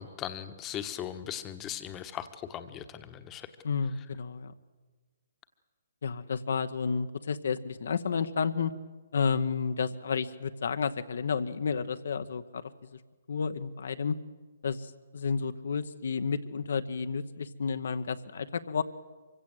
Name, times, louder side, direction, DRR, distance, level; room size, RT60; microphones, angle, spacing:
voice 1, 0.0-3.5, left 10 dB, 20° left, 9 dB, 1.2 m, -39 dB
voice 2, 3.6-4.5 6.0-8.7 9.1-12.6 13.3-14.2 14.6-18.8, left 5 dB, 70° left, 9 dB, 1.0 m, -31 dB
24.0 x 16.0 x 7.9 m, 1.3 s
hypercardioid pair, 140°, 0 cm